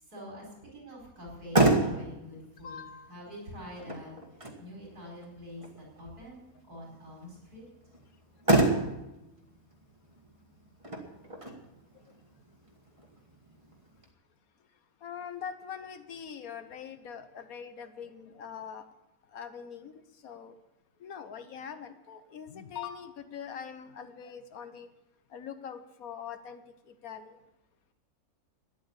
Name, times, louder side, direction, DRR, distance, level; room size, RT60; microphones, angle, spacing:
voice 1, 0.1-2.8 3.1-4.1 4.6-6.4 6.7-7.6, left 1 dB, 85° right, -2 dB, 5.0 m, -45 dB
Motor vehicle (road), 1.2-14.1, right 2 dB, 20° right, 1.8 m, -32 dB
voice 2, 2.6-3.1 5.0-5.1 15.0-18.9 19.3-20.5 21.0-24.9 25.3-27.4, left 7 dB, 70° left, 9 dB, 1.5 m, -43 dB
12.5 x 9.9 x 8.3 m, 0.95 s
omnidirectional pair, 1.6 m